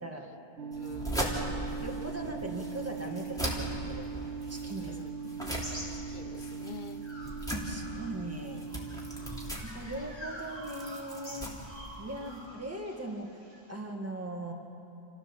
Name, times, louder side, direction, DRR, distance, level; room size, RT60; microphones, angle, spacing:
voice 1, 0.6-1.4 4.8-5.3 5.9-7.1 9.2-9.8 12.1-12.3, left 6 dB, 55° left, 12 dB, 0.8 m, -49 dB
sound 1, 0.6-9.5, right 5 dB, 85° right, 1.3 m, -40 dB
sound 2, 0.7-12.4, equal, 5° left, 3.0 m, -39 dB
voice 2, 1.8-5.0 7.5-8.7 9.6-11.5 12.0-13.4 13.7-14.5, right 1 dB, 15° right, 0 dB, 2.2 m, -40 dB
sound 3, 3.0-6.6 7.0-13.7, equal, 25° left, 2.8 m, -48 dB
28.5 x 15.0 x 7.3 m, 2.7 s
omnidirectional pair, 1.1 m